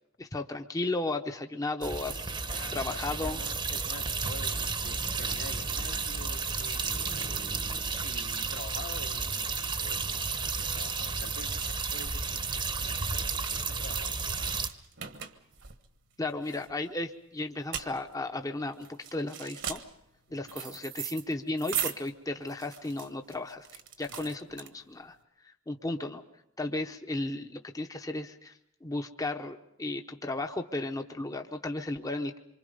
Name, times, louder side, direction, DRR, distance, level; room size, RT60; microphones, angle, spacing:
voice 1, 0.2-2.3 2.7-3.4 16.2-19.8 20.3-23.7 24.0-25.2 25.4-26.2 26.6-32.4, left 2 dB, 15° left, 5 dB, 0.8 m, -34 dB
sound 1, 1.8-14.7, right 4 dB, 25° right, 0.9 m, -32 dB
voice 2, 2.1-7.6 8.0-14.3 20.3-20.6 24.1-24.3, left 3 dB, 75° left, 1 dB, 2.3 m, -47 dB
sound 2, 11.6-25.1, right 9 dB, 60° right, 1.3 m, -41 dB
26.5 x 24.5 x 5.4 m, 0.82 s
head